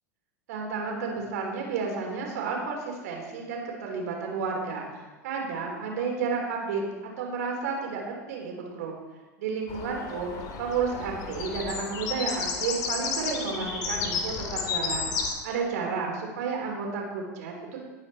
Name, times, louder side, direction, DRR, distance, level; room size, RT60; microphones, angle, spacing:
voice 1, 0.5-6.8 7.2-8.9 9.4-10.3 10.6-17.5, right 5 dB, 65° right, 0 dB, 3.9 m, -31 dB
sound 1, 9.7-15.3, left 5 dB, 45° left, 2.7 m, -32 dB
19.5 x 9.1 x 4.5 m, 1.3 s
figure-of-eight pair, 85°, 9 cm